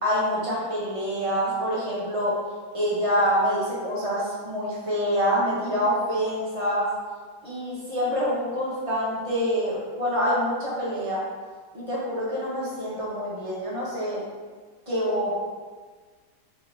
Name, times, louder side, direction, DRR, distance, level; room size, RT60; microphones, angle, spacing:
voice 1, 0.0-2.3 2.7-6.9 7.4-11.2 11.7-14.2 14.9-15.3, equal, 25° right, -7 dB, 0.8 m, -26 dB
3.0 x 2.9 x 4.2 m, 1.5 s
omnidirectional pair, 1.8 m